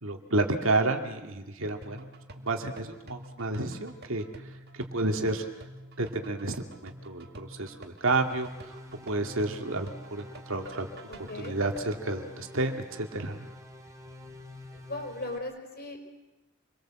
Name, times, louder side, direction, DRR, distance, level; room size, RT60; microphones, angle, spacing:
voice 1, 0.0-2.1 2.4-4.2 4.7-5.4 6.0-8.8 9.1-10.9 11.4-13.5, right 2 dB, 65° right, 5 dB, 2.4 m, -30 dB
sound 1, 1.8-11.8, right 1 dB, 50° right, 2.2 m, -48 dB
sound 2, 8.1-15.4, left 2 dB, 15° right, 2.6 m, -48 dB
voice 2, 11.1-11.6 14.7-16.0, left 2 dB, 45° left, 4 dB, 5.2 m, -38 dB
27.5 x 22.5 x 7.7 m, 1.0 s
head